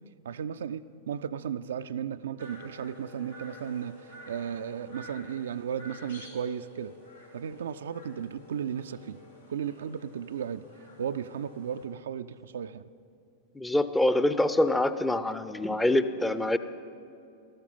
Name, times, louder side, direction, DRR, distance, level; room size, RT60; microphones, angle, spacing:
voice 1, 0.2-6.9 7.3-9.2 9.5-10.7 11.0-12.8, right 8 dB, 65° right, 11 dB, 0.3 m, -35 dB
sound 1, 2.4-11.9, left 1 dB, 90° left, 2.6 m, -50 dB
voice 2, 13.6-16.6, left 1 dB, 5° left, 12 dB, 0.5 m, -25 dB
13.5 x 13.0 x 5.4 m, 2.6 s
figure-of-eight pair, 90°, 0 cm